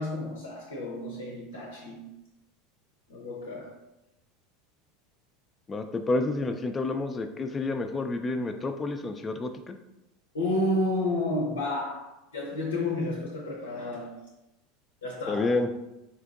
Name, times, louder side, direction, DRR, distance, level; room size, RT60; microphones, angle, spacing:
voice 1, 0.0-2.1 3.1-3.8 10.3-14.2 15.0-15.6, left 1 dB, 85° left, 0.6 m, -31 dB
voice 2, 5.7-9.8 15.3-15.7, left 2 dB, 25° left, 0.3 m, -29 dB
4.3 x 2.5 x 2.4 m
hypercardioid pair, 85°, 0 cm